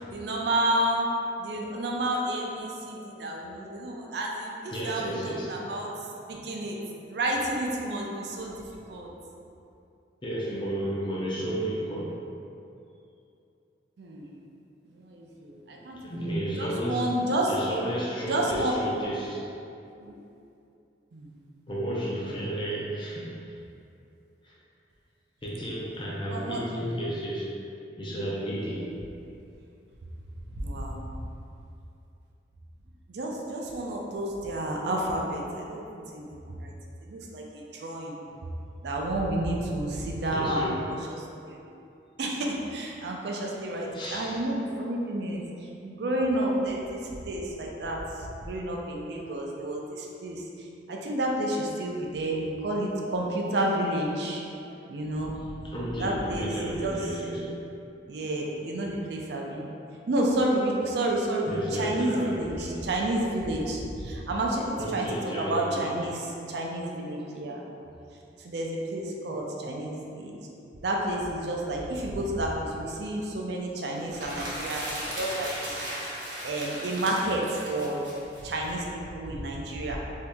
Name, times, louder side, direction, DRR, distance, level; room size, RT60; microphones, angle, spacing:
voice 1, 0.1-1.1 1.4-5.9 6.3-6.8 7.1-8.6 8.9-9.1 14.0-14.3 14.9-16.3 16.6-17.5 18.3-18.7 20.0-20.2 21.1-21.3 26.3-26.6 30.5-31.2 33.1-36.7 37.1-38.2 38.8-40.7 41.5-41.6 42.2-45.4 45.8-48.0 48.3-50.4 50.9-54.5 54.9-55.3 56.0-57.0 58.1-59.7 60.1-65.1 65.4-67.6 68.4-70.4 70.8-75.9 76.4-78.1 78.4-80.0, right 1 dB, 65° right, -1 dB, 0.4 m, -30 dB
voice 2, 4.7-5.6 6.3-6.5 10.2-12.2 16.0-17.1 17.5-19.5 21.7-23.5 24.4-24.5 25.4-27.5 28.0-28.9 40.3-40.9 43.9-44.4 49.1-49.3 54.7-54.8 55.6-57.5 61.5-62.8 64.8-66.0 69.3-69.4 69.6-69.7, right 1 dB, 25° left, -6 dB, 0.5 m, -32 dB
sound 1, 74.0-78.7, right 1 dB, 80° right, 0.9 m, -37 dB
2.8 x 2.7 x 3.4 m, 2.6 s
head